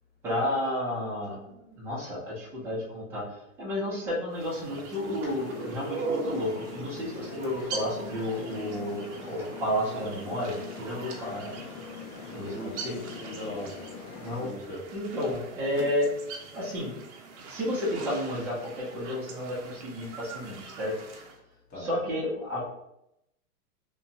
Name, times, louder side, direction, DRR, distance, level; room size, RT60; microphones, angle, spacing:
voice 1, 0.2-11.6 12.3-13.0 14.2-14.5 14.9-16.1 16.5-17.0 17.5-20.9 21.7-22.7, left 1 dB, 5° right, -8 dB, 0.4 m, -32 dB
sound 1, 4.3-21.4, right 4 dB, 50° right, 0.6 m, -41 dB
sound 2, 5.3-14.5, left 5 dB, 65° left, 0.6 m, -43 dB
voice 2, 12.5-13.8 14.3-14.9 21.7-22.0, equal, 20° left, -5 dB, 0.8 m, -40 dB
2.8 x 2.1 x 2.6 m, 0.82 s
hypercardioid pair, 135°, 45 cm